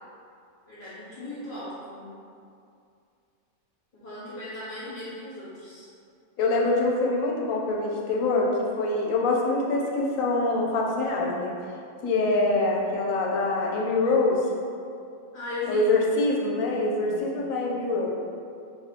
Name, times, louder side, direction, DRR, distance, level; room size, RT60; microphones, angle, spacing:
voice 1, 0.7-2.1 3.9-5.9 15.3-15.8, left 2 dB, 45° left, -11 dB, 1.0 m, -37 dB
voice 2, 6.4-11.6 12.0-14.4 15.7-18.1, left 2 dB, 90° left, -2 dB, 1.0 m, -24 dB
2.8 x 2.7 x 4.1 m, 2.4 s
omnidirectional pair, 1.4 m